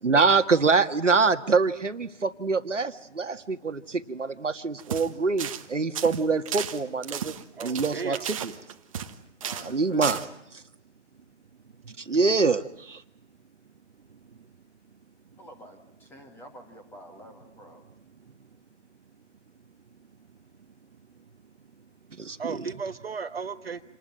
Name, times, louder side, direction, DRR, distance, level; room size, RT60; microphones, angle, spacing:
voice 1, 0.0-7.3 7.6-8.5 9.6-10.2 12.0-13.0 22.2-22.6, right 4 dB, 80° right, 8 dB, 1.9 m, -25 dB
sound 1, 4.8-5.1 5.4-5.7 5.9-9.1 9.4-9.7 10.0-10.2, right 9 dB, 30° right, 1.4 m, -34 dB
voice 2, 7.5-8.2 11.1-11.2 11.8-12.0 14.1-14.4 18.1-18.4 19.7-20.1 20.6-20.7 21.1-21.3 21.7-21.9 22.4-23.8, right 5 dB, 55° right, 8 dB, 1.4 m, -37 dB
voice 3, 9.4-10.4 15.4-17.8, equal, 5° left, 4 dB, 2.4 m, -48 dB
28.0 x 20.0 x 9.2 m, 0.77 s
figure-of-eight pair, 150°, 36 cm